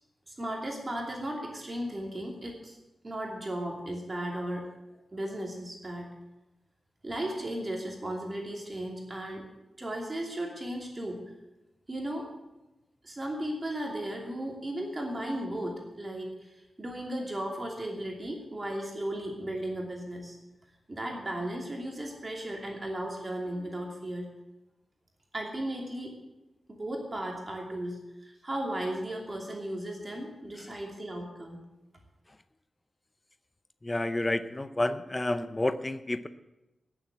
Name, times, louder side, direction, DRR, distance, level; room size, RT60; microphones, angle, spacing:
voice 1, 0.3-2.8 3.0-4.7 5.1-6.1 7.0-9.5 9.8-11.2 11.9-12.3 13.0-16.3 16.8-20.4 20.9-24.3 25.3-26.2 26.7-31.6, right 1 dB, 25° right, 0 dB, 2.7 m, -35 dB
voice 2, 33.8-36.3, left 1 dB, 20° left, 12 dB, 0.6 m, -30 dB
17.0 x 7.3 x 7.9 m, 0.99 s
wide cardioid pair, 140°, 0 cm